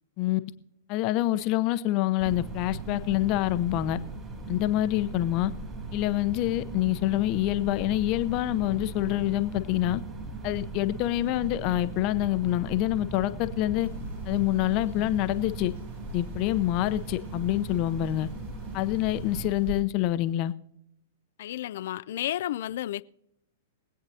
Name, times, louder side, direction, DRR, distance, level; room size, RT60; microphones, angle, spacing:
voice 1, 0.9-4.0 4.5-5.5 5.9-10.0 10.4-13.9 14.3-15.7 16.1-18.3 18.7-20.5, left 15 dB, 40° left, 0.7 m, -26 dB
sound 1, 2.2-19.5, right 3 dB, 25° right, 2.9 m, -38 dB
sound 2, 13.8-19.8, right 1 dB, 75° right, 3.9 m, -43 dB
voice 2, 21.4-23.0, left 13 dB, 60° left, 0.4 m, -32 dB
23.0 x 8.7 x 2.8 m
hypercardioid pair, 110°, 0 cm